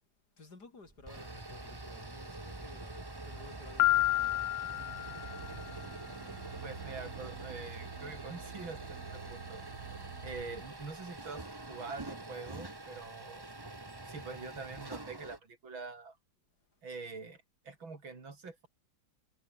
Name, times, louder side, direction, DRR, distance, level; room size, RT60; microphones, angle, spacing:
voice 1, 0.4-4.4 16.7-16.8, left 3 dB, 55° left, 4.5 m, -55 dB
sound 1, 0.9-15.4, right 2 dB, 15° right, 1.3 m, -46 dB
Piano, 3.8-5.7, left 16 dB, 80° left, 1.4 m, -30 dB
sound 2, 4.7-10.7, right 7 dB, 45° right, 1.8 m, -48 dB
voice 2, 6.6-9.6 10.2-13.4 14.0-16.2 16.8-18.7, right 4 dB, 85° right, 4.8 m, -45 dB
omnidirectional pair, 2.1 m